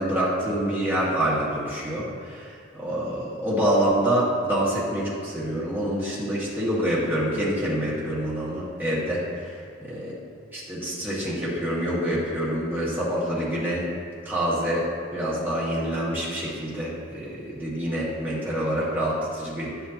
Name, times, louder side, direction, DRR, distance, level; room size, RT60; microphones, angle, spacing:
voice 1, 0.0-10.1 10.5-13.9 14.2-19.9, right 1 dB, 10° right, -8 dB, 1.9 m, -26 dB
10.0 x 8.3 x 2.9 m, 2.2 s
head